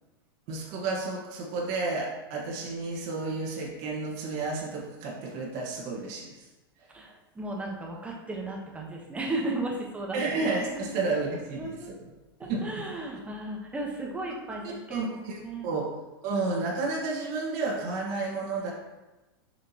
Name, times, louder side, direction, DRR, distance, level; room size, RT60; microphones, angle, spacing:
voice 1, 0.5-6.5 6.8-6.9 10.1-12.0 12.5-12.8 14.9-15.9 16.2-18.7, right 3 dB, 55° right, -3 dB, 1.7 m, -31 dB
voice 2, 6.9-10.2 10.9-11.0 11.5-11.9 12.4-15.1 15.4-15.7, right 2 dB, 10° right, -1 dB, 1.3 m, -35 dB
7.1 x 5.1 x 3.0 m, 1.1 s
hypercardioid pair, 125°, 13 cm